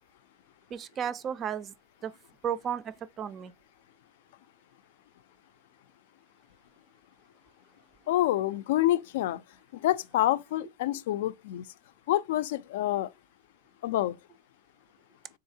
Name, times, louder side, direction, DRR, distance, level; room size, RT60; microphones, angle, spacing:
voice 1, 0.7-1.7 2.0-2.1 2.4-3.5, right 8 dB, 25° right, 0.3 m, -33 dB
voice 2, 8.1-9.4 9.7-11.7 12.1-13.1 13.8-14.2, left 14 dB, 80° left, 0.4 m, -27 dB
3.9 x 3.5 x 2.7 m
supercardioid pair, 165°, 0 cm